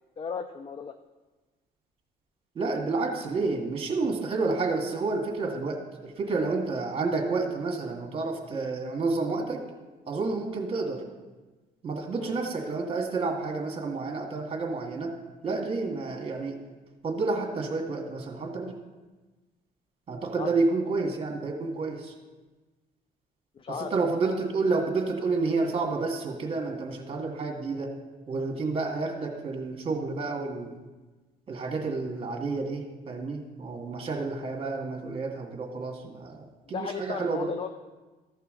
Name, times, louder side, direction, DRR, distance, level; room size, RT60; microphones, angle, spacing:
voice 1, 0.2-0.9 12.2-12.3 20.4-20.5 23.6-23.9 36.7-37.7, left 6 dB, 30° left, 9 dB, 0.4 m, -35 dB
voice 2, 2.6-9.6 10.1-11.0 11.8-15.1 15.4-16.6 17.0-18.7 20.1-22.1 23.7-27.9 28.3-30.8 31.5-37.5, right 3 dB, 35° right, 2 dB, 1.8 m, -30 dB
14.5 x 5.7 x 3.8 m, 1.2 s
cardioid pair, 110°, 17 cm